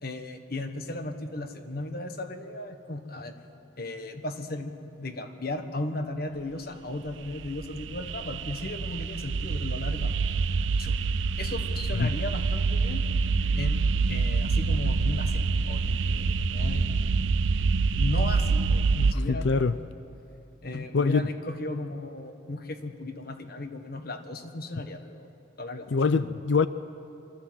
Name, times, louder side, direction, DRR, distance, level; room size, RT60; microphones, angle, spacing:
voice 1, 0.0-3.3 3.8-10.1 10.8-11.0 11.4-13.0 13.6-17.2 17.9-19.8 20.6-25.3 25.6-26.2, left 2 dB, 50° left, 7 dB, 1.4 m, -36 dB
sound 1, 7.1-19.1, right 4 dB, 75° right, 0.6 m, -26 dB
voice 2, 18.9-19.7 20.7-21.3 25.9-26.7, left 4 dB, 65° left, 13 dB, 0.5 m, -25 dB
25.5 x 13.5 x 7.7 m, 2.7 s
head